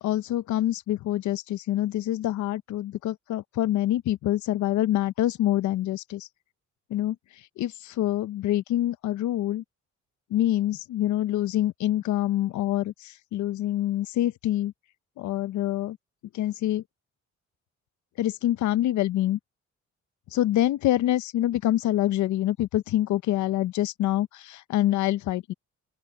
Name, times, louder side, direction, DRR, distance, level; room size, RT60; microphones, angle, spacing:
voice 1, 0.0-6.3 6.9-9.6 10.3-14.7 15.2-16.0 16.3-16.8 18.2-19.4 20.3-25.5, left 13 dB, 70° left, 0.6 m, -26 dB
open air
cardioid pair, 90°, 30 cm